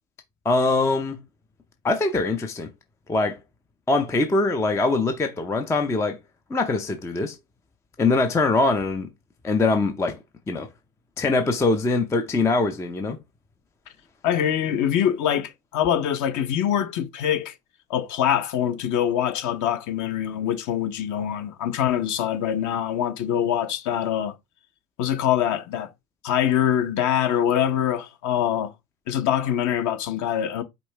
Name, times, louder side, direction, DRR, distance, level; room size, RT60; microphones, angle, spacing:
voice 1, 0.4-1.2 1.8-2.7 3.1-3.4 3.9-6.2 6.5-7.4 8.0-9.1 9.4-10.2 10.5-10.7 11.2-13.2, left 3 dB, 5° left, 0.5 m, -22 dB
voice 2, 14.2-17.5 17.9-24.3 25.0-25.9 26.2-28.7 29.1-30.6, left 10 dB, 40° left, 0.9 m, -24 dB
5.2 x 2.7 x 3.3 m
hypercardioid pair, 90°, 45 cm